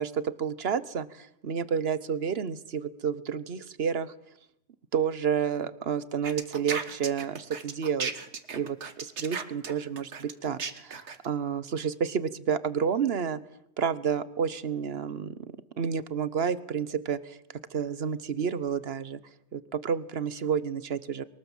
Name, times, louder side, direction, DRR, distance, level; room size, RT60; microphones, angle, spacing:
voice 1, 0.0-4.1 4.9-8.1 8.5-13.4 13.8-17.4 17.7-19.2 19.5-21.2, right 7 dB, 65° right, 16 dB, 1.3 m, -30 dB
sound 1, 6.2-11.3, right 5 dB, 80° right, 1.7 m, -35 dB
23.0 x 19.5 x 7.3 m, 0.80 s
omnidirectional pair, 1.1 m